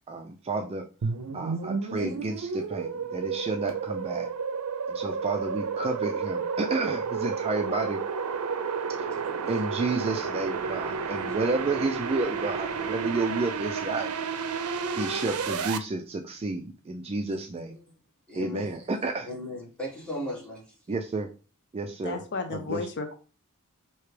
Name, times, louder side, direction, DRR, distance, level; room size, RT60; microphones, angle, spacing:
voice 1, 0.1-0.8 1.3-4.3 4.9-8.0 9.5-14.1 15.0-17.8 18.4-19.3 20.9-21.3 21.7-22.2 22.5-22.8, right 3 dB, 25° right, 5 dB, 0.3 m, -31 dB
sound 1, 1.0-15.8, right 5 dB, 80° right, 0.5 m, -31 dB
voice 2, 9.1-9.4 18.3-18.7 19.2-20.6, left 1 dB, 5° left, -4 dB, 1.6 m, -37 dB
voice 3, 22.0-23.1, left 3 dB, 50° left, 7 dB, 0.5 m, -33 dB
4.6 x 2.9 x 3.1 m, 0.35 s
head